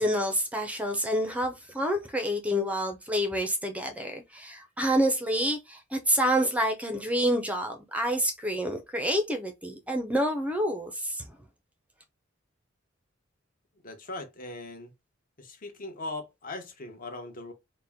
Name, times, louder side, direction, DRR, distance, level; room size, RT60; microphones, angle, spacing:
voice 1, 0.0-11.3, equal, 5° right, 0.5 m, -28 dB
voice 2, 13.8-14.9 15.4-17.5, left 2 dB, 45° left, 0.9 m, -39 dB
4.2 x 2.1 x 3.5 m
head